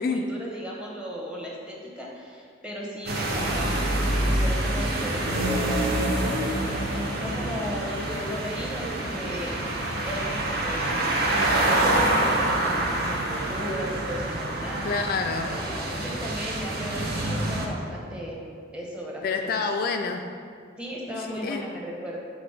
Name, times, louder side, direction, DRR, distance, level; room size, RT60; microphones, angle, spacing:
voice 1, 0.0-6.5 6.8-9.6 10.0-14.9 15.4-18.4 18.7-19.6 20.8-22.2, equal, 5° right, -3 dB, 1.0 m, -36 dB
sound 1, 3.1-17.7, right 1 dB, 55° right, 0.8 m, -26 dB
voice 2, 14.8-15.5 19.2-20.2 21.2-21.6, left 4 dB, 50° left, 4 dB, 0.3 m, -27 dB
5.9 x 3.8 x 4.9 m, 2.2 s
head